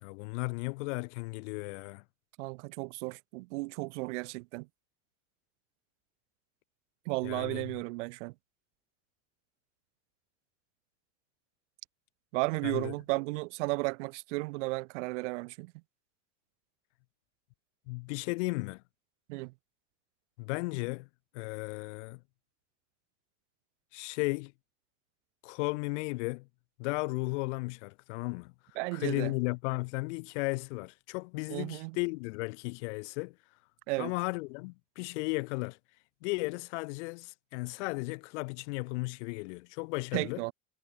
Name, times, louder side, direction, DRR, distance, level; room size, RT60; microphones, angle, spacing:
voice 1, 0.0-2.0 7.2-7.6 12.6-12.9 17.9-18.8 20.4-21.1 21.3-22.2 23.9-24.5 25.4-26.5 26.8-28.5 28.9-33.4 34.0-35.8 36.2-40.4, left 26 dB, 80° left, 1.2 m, -35 dB
voice 2, 2.4-4.7 7.1-8.3 12.3-15.7 19.3-19.5 28.8-29.3 31.5-32.0 33.9-34.1 40.1-40.5, right 25 dB, 85° right, 1.0 m, -34 dB
cardioid pair, 165°, 35 cm